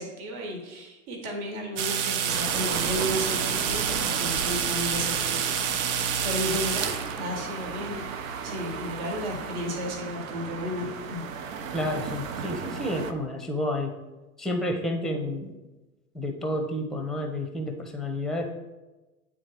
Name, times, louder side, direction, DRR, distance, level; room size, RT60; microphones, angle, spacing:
voice 1, 0.0-6.0 6.2-8.0 8.4-11.2, equal, 55° right, 2 dB, 1.5 m, -33 dB
sound 1, 1.8-7.2, right 8 dB, 30° right, 0.4 m, -28 dB
sound 2, 2.3-13.1, right 5 dB, 70° right, 0.7 m, -35 dB
voice 2, 11.7-14.0 14.4-15.5 16.1-18.5, left 1 dB, ahead, 4 dB, 0.8 m, -30 dB
8.9 x 3.7 x 3.3 m, 1.1 s
hypercardioid pair, 90°, 41 cm